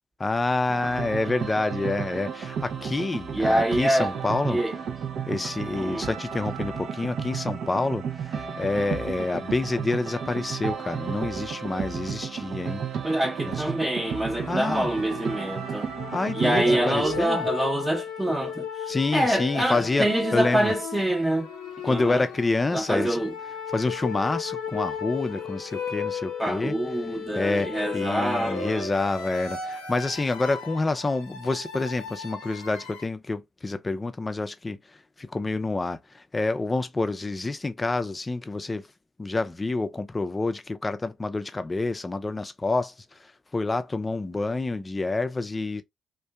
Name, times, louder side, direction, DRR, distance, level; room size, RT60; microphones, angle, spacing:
voice 1, 0.2-4.6 5.3-12.8 13.4-13.6 14.5-14.9 16.1-17.5 18.9-20.7 21.8-23.2 23.7-26.7 27.3-38.9 39.2-45.8, left 3 dB, 30° left, 0.4 m, -28 dB
sound 1, 0.7-17.2, right 7 dB, 65° right, 0.4 m, -33 dB
voice 2, 3.3-4.1 4.5-4.7 5.8-6.1 13.0-15.9 16.3-21.5 21.8-22.2 22.7-23.3 26.4-28.9, right 1 dB, 15° right, 0.7 m, -26 dB
sound 2, 13.7-33.1, left 6 dB, 85° left, 0.5 m, -36 dB
2.5 x 2.2 x 2.2 m
hypercardioid pair, 45°, 0 cm